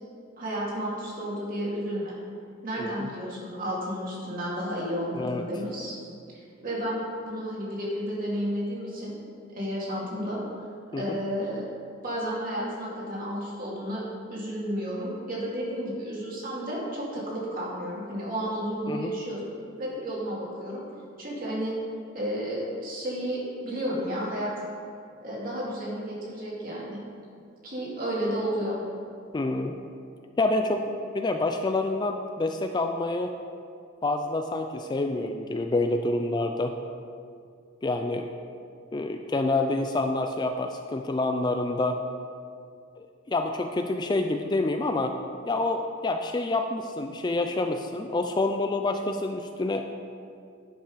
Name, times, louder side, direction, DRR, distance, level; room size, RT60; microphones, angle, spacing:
voice 1, 0.4-2.2 2.6-6.0 6.3-9.1 9.5-10.4 10.9-11.7 12.0-19.5 19.8-20.8 21.2-21.7 22.1-24.5 25.2-27.0 27.6-28.8, equal, 45° right, -5 dB, 2.4 m, -32 dB
voice 2, 2.8-3.1 5.1-5.4 10.9-11.2 18.9-19.1 29.3-29.8 30.4-33.4 34.0-36.7 37.8-38.3 38.9-42.0 43.0-45.2 45.5-50.0, left 2 dB, 20° left, 6 dB, 0.3 m, -27 dB
10.0 x 5.7 x 4.9 m, 2.3 s
head